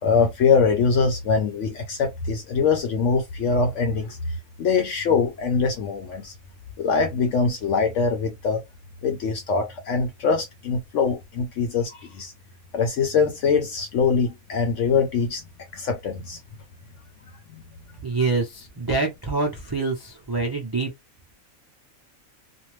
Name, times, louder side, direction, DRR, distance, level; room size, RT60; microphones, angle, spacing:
voice 1, 0.0-4.2 4.6-6.3 6.8-8.6 9.0-12.3 12.7-15.4 15.7-16.4 17.5-17.6, left 5 dB, 65° left, 0.9 m, -23 dB
voice 2, 18.0-20.9, right 3 dB, 30° right, 0.4 m, -26 dB
2.6 x 2.2 x 3.1 m
omnidirectional pair, 1.5 m